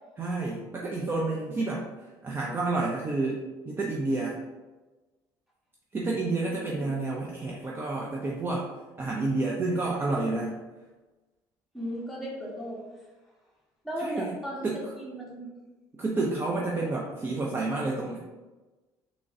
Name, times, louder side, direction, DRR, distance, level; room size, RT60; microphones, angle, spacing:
voice 1, 0.2-4.4 5.9-8.7 9.0-10.6 14.0-14.3 14.6-14.9 16.0-18.2, right 2 dB, 25° right, -3 dB, 0.5 m, -30 dB
voice 2, 11.7-12.8 13.8-15.5, equal, ahead, -5 dB, 1.2 m, -36 dB
3.6 x 3.0 x 2.6 m, 1.2 s
cardioid pair, 110°, 9 cm